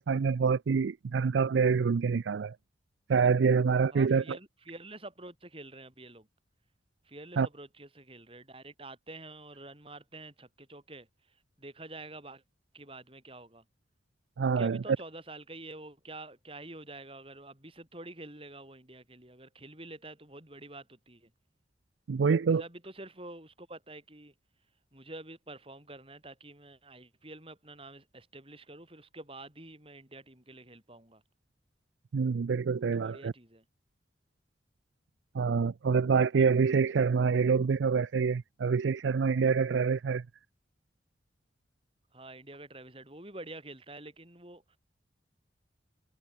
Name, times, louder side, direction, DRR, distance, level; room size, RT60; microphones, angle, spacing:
voice 1, 0.0-2.5 3.1-4.4 7.4-7.5 14.4-14.8 22.1-22.6 32.1-33.3 35.3-40.2, right 5 dB, 85° right, 0.4 m, -26 dB
voice 2, 3.9-6.3 7.0-12.4 12.7-13.6 14.6-21.3 22.6-24.3 24.9-31.2 32.7-33.6 42.1-44.8, right 2 dB, 30° right, 6.3 m, -48 dB
head